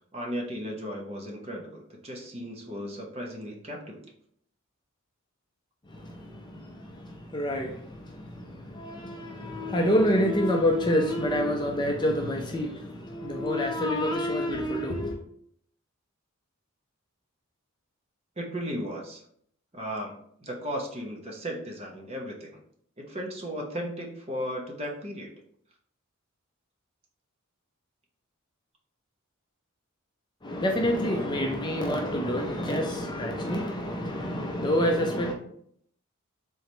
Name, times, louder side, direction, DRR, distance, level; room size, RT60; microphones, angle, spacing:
voice 1, 0.1-4.0 18.4-19.2 19.7-22.6 23.0-25.3, equal, 30° right, 0.7 m, -35 dB
voice 2, 5.9-15.2 30.4-35.3, equal, 20° left, 0.4 m, -27 dB
3.8 x 3.2 x 3.0 m
head